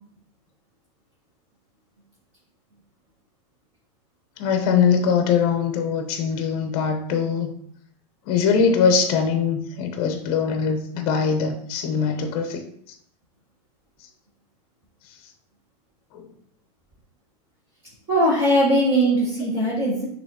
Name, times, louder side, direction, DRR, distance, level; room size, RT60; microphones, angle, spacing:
voice 1, 4.4-7.5 8.3-13.0 16.1-16.3, left 6 dB, 45° left, 5 dB, 0.7 m, -22 dB
voice 2, 18.1-20.1, right 1 dB, 30° right, -7 dB, 1.7 m, -20 dB
6.3 x 3.0 x 2.8 m, 0.66 s
supercardioid pair, 145°, 21 cm